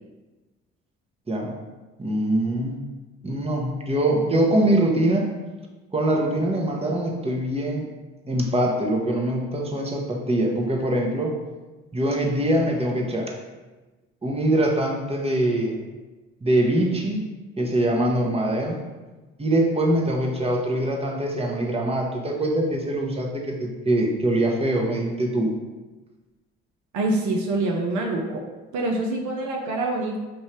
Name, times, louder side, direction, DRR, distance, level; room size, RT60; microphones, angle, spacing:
voice 1, 2.0-2.8 3.2-5.3 5.9-7.9 8.3-11.3 11.9-13.4 14.2-15.8 16.4-17.3 17.6-18.8 19.4-25.5, right 1 dB, 20° right, 0 dB, 1.1 m, -23 dB
voice 2, 26.9-28.4 28.7-30.2, right 2 dB, 65° right, 1 dB, 0.7 m, -25 dB
6.1 x 2.6 x 3.3 m, 1.2 s
hypercardioid pair, 50°, 31 cm